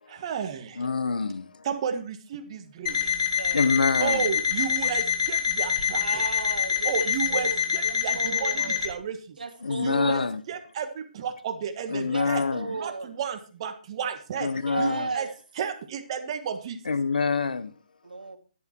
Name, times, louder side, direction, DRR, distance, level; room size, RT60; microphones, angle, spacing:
voice 1, 0.1-0.8 1.6-3.3 4.0-6.2 6.8-9.4 9.8-10.2 10.5-12.4 12.7-14.5 14.8-15.3 15.6-16.8, right 7 dB, 40° right, 1.6 m, -32 dB
voice 2, 0.8-1.7 3.5-4.3 9.6-10.4 11.9-12.7 14.4-15.1 16.8-17.7, left 4 dB, 85° left, 0.8 m, -26 dB
Alarm, 2.9-8.9, left 7 dB, 45° left, 2.3 m, -26 dB
voice 3, 3.0-3.8 6.0-7.6 7.8-8.8 9.4-10.3 12.0-13.1 14.7-15.3 18.0-18.4, right 4 dB, 85° right, 2.4 m, -35 dB
11.0 x 8.2 x 4.5 m
hypercardioid pair, 155°, 5 cm